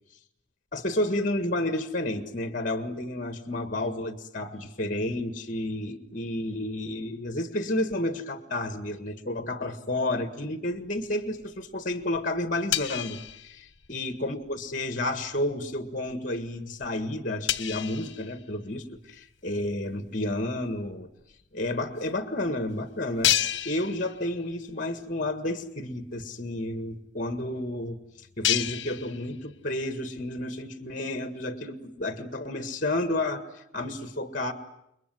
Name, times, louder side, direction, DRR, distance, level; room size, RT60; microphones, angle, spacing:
voice 1, 0.7-21.1 21.5-23.4 23.7-34.5, left 1 dB, 45° left, 9 dB, 1.8 m, -31 dB
sound 1, 10.8-11.6 11.9-14.2 14.4-14.7 15.2-15.5 16.1-16.2 16.5-16.6 16.8-16.9 17.5-19.1 19.7-19.8 20.9-21.0 21.2-21.3 22.0-22.1 22.5-22.6 23.2-24.7 25.0-25.1 25.6-25.7 25.9-29.7, left 12 dB, 70° left, 1.1 m, -32 dB
29.0 x 22.0 x 9.3 m, 0.79 s
head